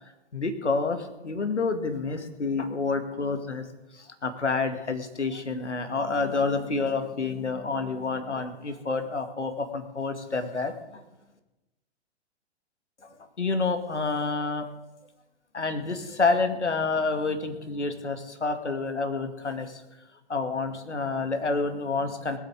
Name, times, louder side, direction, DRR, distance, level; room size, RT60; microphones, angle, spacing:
voice 1, 0.3-3.7 3.9-11.0 13.0-14.7 15.5-19.8 20.3-22.4, left 4 dB, 80° left, 7 dB, 2.4 m, -28 dB
19.0 x 8.6 x 8.4 m, 0.99 s
figure-of-eight pair, 120°, 34 cm